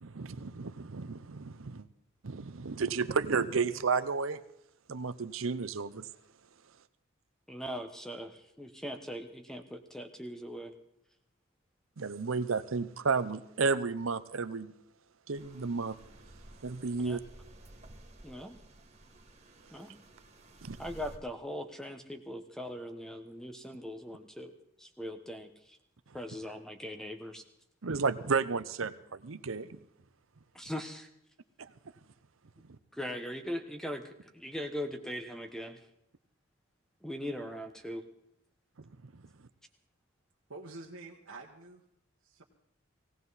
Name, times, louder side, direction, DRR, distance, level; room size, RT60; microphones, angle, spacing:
voice 1, 0.0-1.9 2.2-4.4 4.9-6.1 12.0-14.7 15.3-16.0 16.6-17.2 20.6-20.8 27.8-29.8 31.6-31.7 32.7-32.8 38.8-39.2, right 4 dB, 70° right, 0.7 m, -32 dB
voice 2, 7.5-10.7 17.0-17.2 18.2-18.6 19.7-19.9 20.8-24.5 24.8-25.8 26.1-27.4 30.5-31.1 32.9-35.8 37.0-38.0, equal, ahead, 1.1 m, -40 dB
sound 1, 15.3-21.2, right 1 dB, 30° right, 2.2 m, -54 dB
voice 3, 40.5-41.8 42.3-42.4, right 2 dB, 90° right, 1.4 m, -47 dB
18.0 x 18.0 x 4.1 m
head